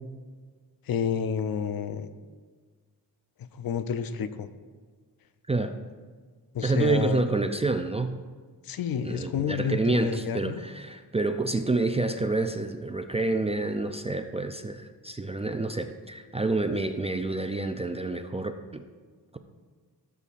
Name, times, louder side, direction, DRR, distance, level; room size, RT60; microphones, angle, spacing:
voice 1, 0.9-2.1 3.4-4.5 6.5-7.2 8.6-10.6, left 7 dB, 65° left, 11 dB, 0.6 m, -30 dB
voice 2, 6.6-8.2 9.0-18.8, right 3 dB, 15° right, 7 dB, 0.4 m, -28 dB
16.0 x 7.1 x 2.5 m, 1.5 s
wide cardioid pair, 135°, 38 cm